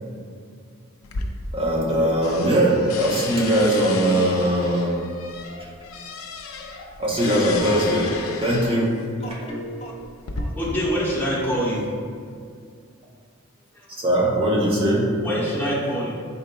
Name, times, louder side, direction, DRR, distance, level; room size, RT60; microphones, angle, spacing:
sound 1, 1.0-1.9 2.2-9.0 9.8-10.4, left 3 dB, 80° left, 0.4 m, -33 dB
voice 1, 1.5-5.0 5.6-5.7 7.0-8.1 8.4-8.9 14.0-15.1, right 1 dB, 25° right, -4 dB, 0.7 m, -20 dB
voice 2, 8.3-11.8, equal, 30° left, -2 dB, 0.5 m, -38 dB
voice 3, 10.6-11.9 13.7-13.9 15.2-16.1, equal, 10° left, -8 dB, 0.9 m, -25 dB
4.4 x 3.8 x 2.2 m, 2.2 s
head